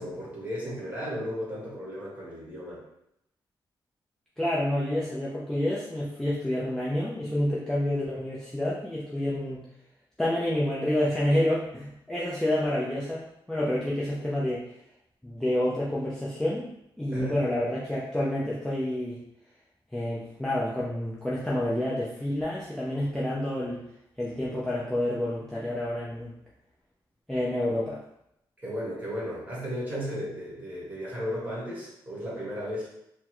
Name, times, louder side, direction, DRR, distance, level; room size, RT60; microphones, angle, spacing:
voice 1, 0.0-2.8 17.1-17.5 28.6-32.9, equal, 20° right, -6 dB, 1.3 m, -35 dB
voice 2, 4.4-9.6 10.2-14.6 15.2-16.7 17.0-19.2 19.9-23.8 24.2-26.3 27.3-28.0, left 1 dB, 5° left, -7 dB, 0.5 m, -28 dB
3.5 x 2.0 x 3.0 m, 0.79 s
wide cardioid pair, 120°, 9 cm